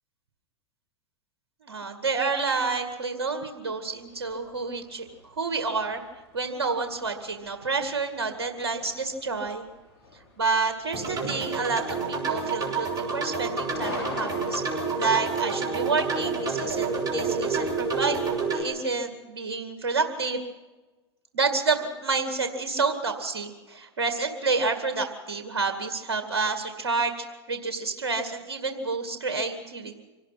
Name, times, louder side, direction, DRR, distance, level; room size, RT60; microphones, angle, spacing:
voice 1, 1.6-5.1 5.4-6.0 6.3-9.6 10.4-18.2 18.5-20.4 21.3-27.1 27.5-29.9, right 4 dB, 85° right, 5 dB, 2.2 m, -29 dB
sound 1, 3.9-18.4, left 3 dB, 75° left, 6.6 m, -45 dB
sound 2, 10.9-18.6, right 4 dB, 30° right, 6.3 m, -29 dB
26.0 x 18.0 x 5.8 m, 1.2 s
hypercardioid pair, 95°, 14 cm